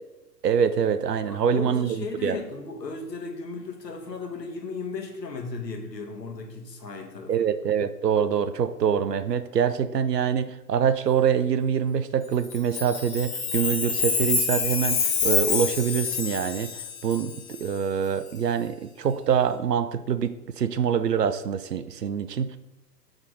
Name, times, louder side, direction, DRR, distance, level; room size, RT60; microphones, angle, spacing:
voice 1, 0.4-2.4 7.3-22.6, right 8 dB, 70° right, 13 dB, 0.7 m, -25 dB
voice 2, 1.3-7.5, left 4 dB, 75° left, 3 dB, 1.5 m, -35 dB
Chime, 12.4-17.6, left 5 dB, 40° left, 1.7 m, -27 dB
6.5 x 3.8 x 4.8 m, 0.95 s
figure-of-eight pair, 125°, 50 cm